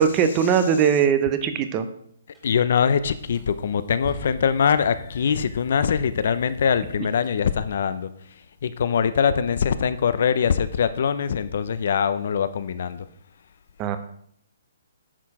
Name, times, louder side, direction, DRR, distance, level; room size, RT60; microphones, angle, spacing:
voice 1, 0.0-1.9 13.8-14.0, right 7 dB, 20° right, 10 dB, 0.7 m, -20 dB
sound 1, 2.3-2.5 3.1-7.4, left 1 dB, 5° right, 2.0 m, -44 dB
voice 2, 2.4-8.1 8.6-13.1, left 7 dB, 55° left, 13 dB, 0.6 m, -23 dB
9.9 x 6.7 x 4.8 m, 0.66 s
hypercardioid pair, 170°, 0 cm